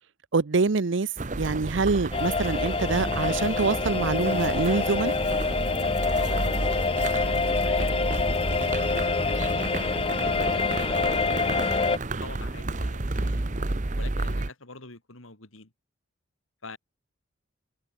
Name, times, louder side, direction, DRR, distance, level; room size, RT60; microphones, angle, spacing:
voice 1, 0.3-1.1 1.4-5.1, right 4 dB, 65° right, 0.7 m, -25 dB
sound 1, 1.2-14.5, right 2 dB, 35° right, 0.9 m, -31 dB
sound 2, 2.1-12.0, left 4 dB, 25° left, 0.4 m, -26 dB
voice 2, 6.2-6.8 7.0-9.6 10.2-13.4 13.9-15.7 16.6-16.8, left 3 dB, 80° left, 3.6 m, -46 dB
head